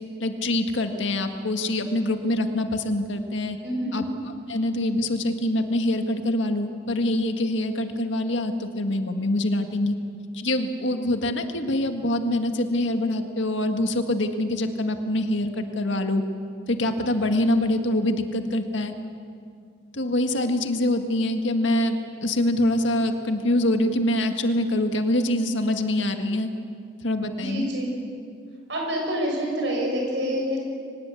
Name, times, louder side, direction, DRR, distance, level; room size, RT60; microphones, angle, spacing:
voice 1, 0.2-3.6 3.9-4.0 4.5-10.0 10.3-16.2 16.7-18.9 19.9-26.5 27.0-27.7, left 1 dB, 75° left, 6 dB, 1.8 m, -24 dB
voice 2, 3.6-4.0 27.4-27.9 28.7-30.6, equal, 65° right, 0 dB, 7.5 m, -27 dB
24.5 x 19.5 x 8.4 m, 2.3 s
head